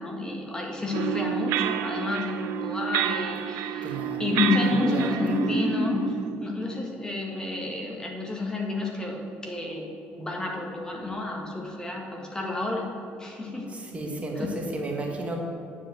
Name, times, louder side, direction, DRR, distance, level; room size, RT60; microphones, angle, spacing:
voice 1, 0.0-6.1 6.4-12.9 13.2-13.7 14.2-14.5, left 2 dB, 15° left, 0 dB, 1.6 m, -29 dB
sound 1, 0.9-6.3, right 10 dB, 85° right, 0.5 m, -29 dB
voice 2, 3.8-4.3 4.6-5.4 13.7-15.4, right 2 dB, 30° right, 0 dB, 1.7 m, -33 dB
9.7 x 4.9 x 7.9 m, 2.7 s
cardioid pair, 105°, 5 cm